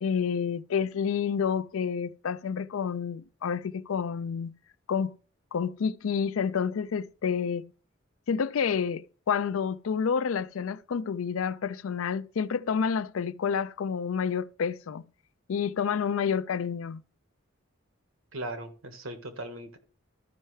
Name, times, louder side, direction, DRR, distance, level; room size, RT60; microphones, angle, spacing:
voice 1, 0.0-4.5 4.9-5.1 5.5-7.7 8.3-15.0 15.5-17.0, left 6 dB, 85° left, 0.4 m, -29 dB
voice 2, 18.3-19.8, right 1 dB, 85° right, 1.5 m, -38 dB
13.5 x 5.5 x 3.2 m
head